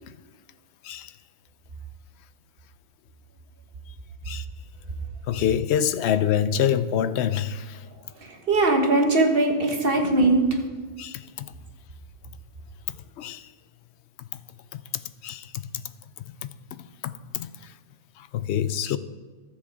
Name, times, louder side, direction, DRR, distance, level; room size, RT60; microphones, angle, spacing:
voice 1, 5.3-7.8 11.0-11.5 12.9-13.5 14.2-14.4 14.7-14.8 15.2-15.7 16.4-17.7 18.2-19.0, left 9 dB, 65° left, 0.7 m, -27 dB
voice 2, 8.1-10.6, right 2 dB, 45° right, 1.6 m, -21 dB
13.0 x 7.3 x 4.9 m
omnidirectional pair, 1.4 m